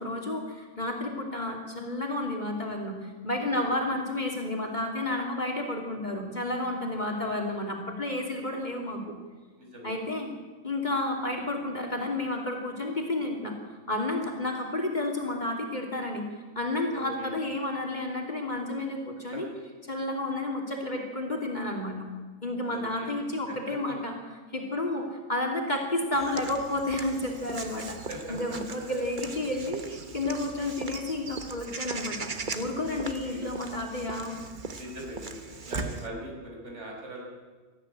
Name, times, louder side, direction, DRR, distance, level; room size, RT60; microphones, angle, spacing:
voice 1, 0.0-9.1 9.8-10.3 10.6-16.3 16.5-19.5 19.9-22.0 22.4-24.1 24.5-28.0 28.3-34.4, left 2 dB, 30° left, 2 dB, 3.0 m, -31 dB
voice 2, 3.5-3.9 6.9-7.2 9.6-9.9 16.9-17.3 19.3-19.4 22.6-23.1 23.5-23.6 28.1-28.4 28.7-28.8 32.9-33.5 34.7-37.2, right 1 dB, 50° right, -1 dB, 5.9 m, -41 dB
Walk footsteps / Bird vocalization bird call bird song, 26.1-36.1, right 4 dB, 35° right, 1.3 m, -39 dB
20.0 x 14.0 x 9.9 m, 1.4 s
omnidirectional pair, 1.5 m